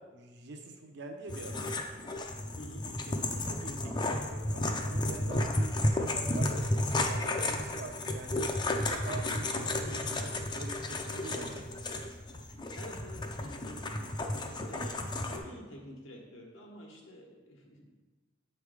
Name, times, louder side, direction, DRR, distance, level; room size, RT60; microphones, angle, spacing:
voice 1, 0.0-1.7 3.1-8.5 8.8-11.6, right 2 dB, 60° right, 3 dB, 0.7 m, -45 dB
sound 1, 1.3-15.4, left 1 dB, 20° left, 0.4 m, -33 dB
voice 2, 2.6-2.9 12.7-17.9, left 1 dB, 80° left, 0 dB, 1.2 m, -48 dB
7.2 x 3.3 x 4.8 m, 1.3 s
head